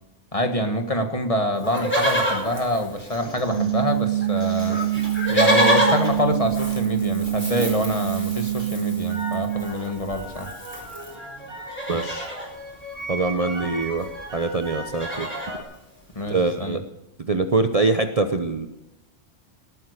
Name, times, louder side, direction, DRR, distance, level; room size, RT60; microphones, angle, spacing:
voice 1, 0.3-4.8 5.3-10.5 16.1-16.8, equal, 30° left, 6 dB, 1.7 m, -26 dB
Livestock farm animals working animals, 1.6-3.6 3.9-4.0 4.2-11.1 11.6-12.5 13.7-13.8 14.0-14.3 14.6-15.6 16.2-16.3, equal, 10° left, 4.7 m, -27 dB
sound 1, 2.0-4.0 4.3-8.0 8.3-15.6, right 1 dB, 90° right, 5.6 m, -39 dB
sound 2, 3.4-9.6, right 13 dB, 45° left, 1.3 m, -25 dB
voice 2, 11.9-12.4 13.1-15.3 16.3-16.8 17.2-18.7, right 3 dB, 35° right, 8 dB, 0.8 m, -24 dB
18.0 x 9.3 x 6.6 m, 0.91 s
omnidirectional pair, 1.2 m